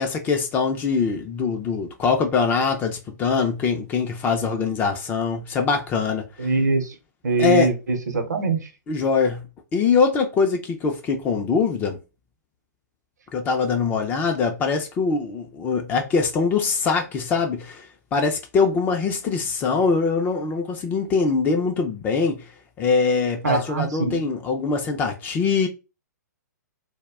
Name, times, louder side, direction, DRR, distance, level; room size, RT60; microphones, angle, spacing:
voice 1, 0.0-6.3 7.4-7.7 8.9-9.5 9.7-12.0 13.3-17.9 18.1-22.4 22.8-25.7, left 5 dB, 20° left, 0.4 m, -23 dB
voice 2, 6.4-6.9 7.2-8.6 23.4-24.2, right 3 dB, 70° right, 0.7 m, -23 dB
2.2 x 2.1 x 3.4 m
figure-of-eight pair, 120°, 10 cm